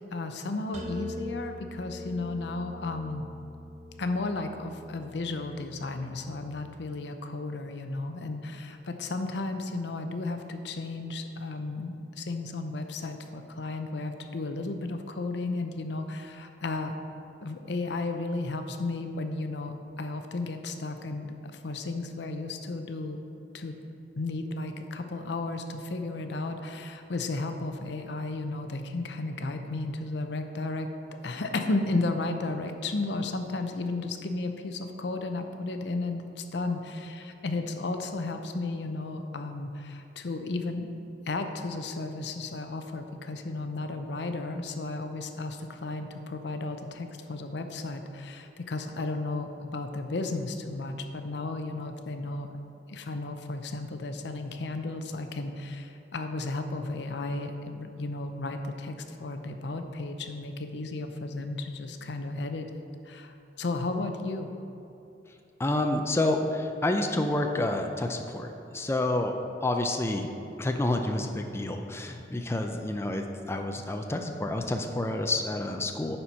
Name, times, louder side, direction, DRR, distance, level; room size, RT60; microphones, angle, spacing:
voice 1, 0.1-3.2 4.0-16.9 17.4-23.2 23.5-23.8 24.2-30.9 31.2-40.9 41.3-52.5 52.9-62.7 63.0-64.5, left 2 dB, 70° left, 7 dB, 0.6 m, -34 dB
sound 1, 0.7-6.5, left 1 dB, 40° right, 0.9 m, -43 dB
voice 2, 65.6-68.5 68.7-69.3 69.6-70.3 70.6-76.2, left 2 dB, 15° left, 4 dB, 0.4 m, -29 dB
9.4 x 4.4 x 5.5 m, 2.9 s
head